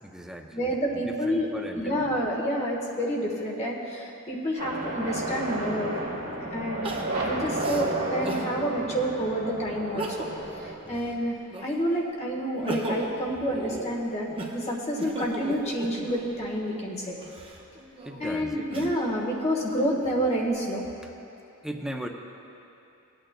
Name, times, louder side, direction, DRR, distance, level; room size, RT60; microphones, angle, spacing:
voice 1, 0.0-2.2 10.8-11.0 18.0-18.9 21.0-21.1 21.6-22.1, right 1 dB, 5° right, 2 dB, 0.5 m, -38 dB
voice 2, 0.5-6.0 6.4-10.3 10.6-11.3 11.6-17.1 18.2-20.9, equal, 30° left, -2 dB, 1.3 m, -29 dB
sound 1, 4.6-10.7, right 2 dB, 65° right, 2.2 m, -32 dB
Crying sobbing, 5.5-5.6 6.8-8.5 9.1-9.2 9.8-10.5 10.9-11.9 12.4-16.4 17.1-19.2 19.7-20.5, right 1 dB, 25° right, 0.8 m, -37 dB
18.0 x 8.9 x 2.2 m, 2.8 s
head